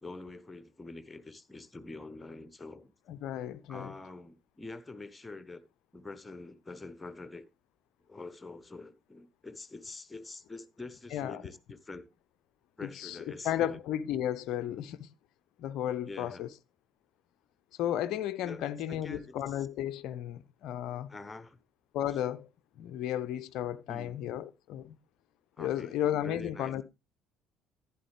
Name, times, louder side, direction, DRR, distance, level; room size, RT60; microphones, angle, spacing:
voice 1, 0.0-2.9 3.7-5.6 5.9-7.4 8.1-12.1 12.8-13.8 16.1-16.5 18.4-19.6 21.1-21.6 23.9-24.2 25.6-26.7, left 3 dB, 15° left, 0.9 m, -45 dB
voice 2, 3.1-3.9 11.1-11.4 12.8-15.1 15.6-16.5 17.8-21.1 21.9-22.5 22.8-25.0 25.6-26.8, left 11 dB, 55° left, 0.4 m, -34 dB
11.0 x 9.7 x 3.2 m
figure-of-eight pair, 55°, 0 cm